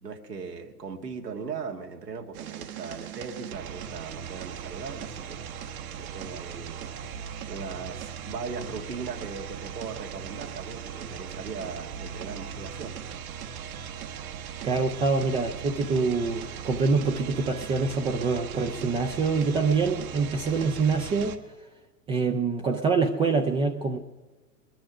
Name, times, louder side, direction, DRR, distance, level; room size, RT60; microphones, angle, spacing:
voice 1, 0.0-5.6 6.0-13.0 18.7-18.9, right 5 dB, 85° right, 3 dB, 2.0 m, -39 dB
sound 1, 2.3-21.4, right 8 dB, 60° right, 1.5 m, -39 dB
voice 2, 14.6-21.4 22.1-24.0, right 4 dB, 10° right, 4 dB, 0.4 m, -25 dB
20.5 x 10.5 x 6.0 m, 1.2 s
hypercardioid pair, 110°, 47 cm